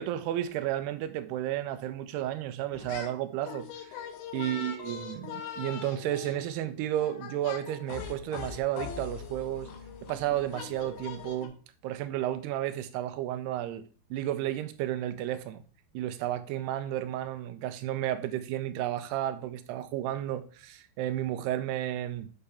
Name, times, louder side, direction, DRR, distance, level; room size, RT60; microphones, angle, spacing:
voice 1, 0.0-4.1 4.3-9.7 10.0-11.5 11.8-13.9 14.1-15.6 15.9-22.3, right 12 dB, 85° right, 2.5 m, -32 dB
sound 1, 2.7-3.2 3.4-11.5, left 8 dB, 80° left, 3.0 m, -42 dB
7.9 x 5.6 x 3.4 m
omnidirectional pair, 4.9 m